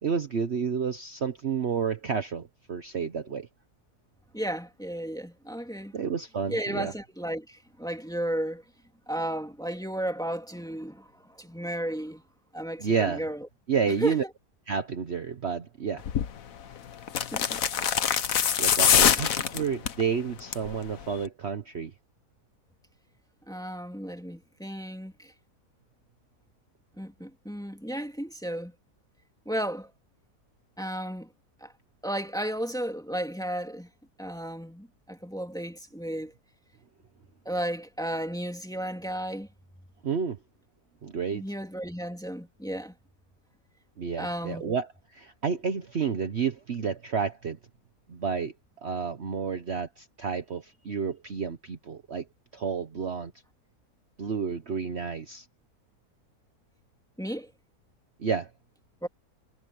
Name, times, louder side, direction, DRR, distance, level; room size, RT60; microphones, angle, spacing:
voice 1, 0.0-3.5 5.9-6.9 12.8-13.2 13.7-14.2 14.7-16.0 18.6-21.9 40.0-40.4 41.0-41.4 44.0-47.6 48.1-48.5 48.8-52.3 52.5-53.3 54.2-55.5 58.2-58.5, right 6 dB, 45° right, 1.2 m, -30 dB
voice 2, 4.3-5.9 6.5-8.6 9.1-12.2 12.5-13.5 14.0-14.3 17.3-17.6 18.8-19.2 23.5-25.3 27.0-28.7 29.5-29.9 30.8-31.3 31.6-31.7 32.0-33.9 34.2-36.3 37.5-39.5 41.3-42.9 44.2-44.7 57.2-57.5 59.0-59.1, right 1 dB, ahead, 2.4 m, -34 dB
sound 1, 16.0-16.3 17.1-20.0 20.4-20.7 21.0-21.1, left 8 dB, 65° left, 1.4 m, -23 dB
omnidirectional pair, 1.6 m